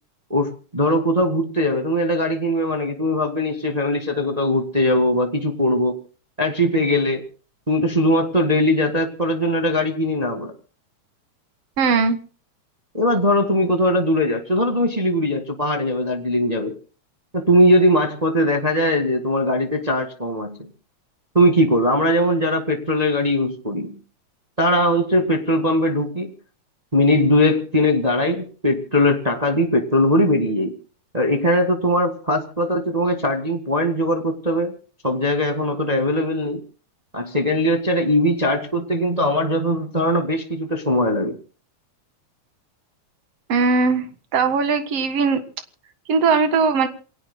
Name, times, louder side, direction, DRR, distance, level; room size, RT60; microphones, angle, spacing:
voice 1, 0.3-6.0 6.4-7.2 7.7-10.5 12.9-16.7 17.3-20.6 21.3-24.0 24.6-26.3 26.9-30.7 31.1-34.7 35.0-36.6 37.1-41.4, left 1 dB, 20° right, 4 dB, 1.3 m, -20 dB
voice 2, 11.8-12.2 43.5-44.1 44.3-45.4 46.1-46.9, right 4 dB, 55° right, 8 dB, 2.7 m, -19 dB
28.0 x 20.5 x 2.2 m, 0.39 s
omnidirectional pair, 3.4 m